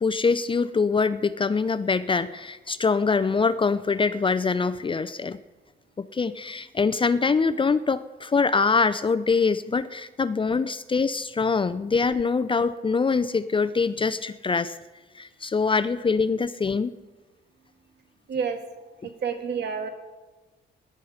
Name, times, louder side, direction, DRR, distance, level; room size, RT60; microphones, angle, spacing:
voice 1, 0.0-5.4 6.0-14.8 15.1-16.9, left 4 dB, 25° left, 14 dB, 0.5 m, -24 dB
voice 2, 18.3-18.6 19.0-19.9, right 6 dB, 60° right, 6 dB, 1.9 m, -29 dB
17.5 x 11.0 x 5.0 m, 1.2 s
cardioid pair, 90°, 20 cm